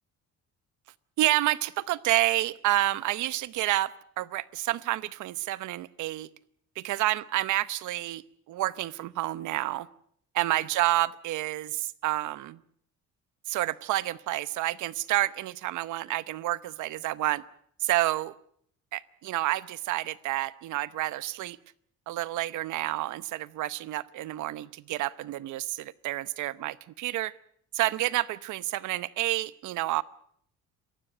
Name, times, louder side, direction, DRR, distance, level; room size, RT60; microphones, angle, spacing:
voice 1, 1.2-6.3 6.8-9.9 10.3-12.6 13.5-17.4 17.8-18.3 18.9-21.6 22.1-27.3 27.7-30.0, right 16 dB, 85° right, 17 dB, 0.9 m, -29 dB
27.0 x 15.5 x 7.8 m, 0.66 s
cardioid pair, 180°, 29 cm